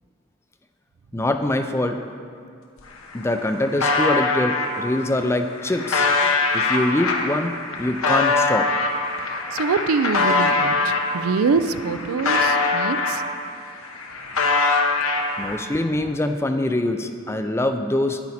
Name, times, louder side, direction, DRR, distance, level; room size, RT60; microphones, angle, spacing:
voice 1, 1.1-2.0 3.1-6.1 6.5-8.7 15.4-18.2, left 1 dB, 10° left, 7 dB, 0.4 m, -24 dB
sound 1, 2.8-2.9 3.1-4.7 5.3-11.1 11.6-13.5 13.8-15.6, left 3 dB, 80° left, 1.0 m, -22 dB
voice 2, 9.3-13.2, right 4 dB, 85° right, 12 dB, 0.4 m, -24 dB
10.5 x 9.8 x 4.2 m, 2.3 s
head